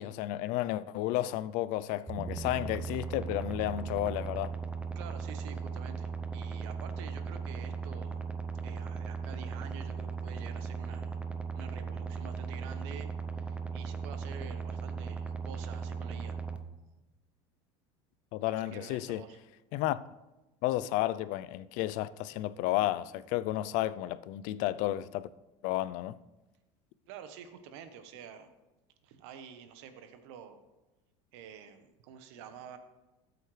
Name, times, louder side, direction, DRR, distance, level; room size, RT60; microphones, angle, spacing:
voice 1, 0.0-4.5 18.3-19.3 19.7-20.0 20.6-25.3 25.6-26.2, left 15 dB, 60° left, 0.4 m, -32 dB
sound 1, 2.1-16.6, right 5 dB, 10° right, 0.7 m, -37 dB
voice 2, 4.9-8.2 8.6-11.2 11.5-13.1 13.4-16.4 18.5-19.4 27.1-28.5 29.0-30.6 31.3-32.8, right 7 dB, 80° right, 1.1 m, -49 dB
13.5 x 7.9 x 3.3 m
supercardioid pair, 120°, 15 cm